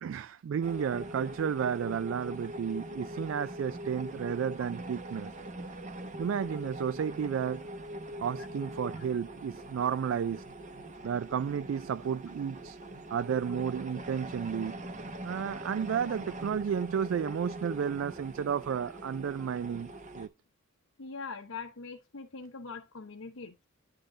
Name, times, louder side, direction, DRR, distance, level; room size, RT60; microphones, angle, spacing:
voice 1, 0.0-5.3 6.2-7.7 8.2-10.4 11.0-12.8 13.1-14.8 15.2-20.3, right 7 dB, 65° right, 0.3 m, -32 dB
sound 1, 0.6-20.3, right 1 dB, 35° right, 0.9 m, -42 dB
voice 2, 21.0-23.7, left 4 dB, 90° left, 0.9 m, -42 dB
10.0 x 3.8 x 3.8 m
head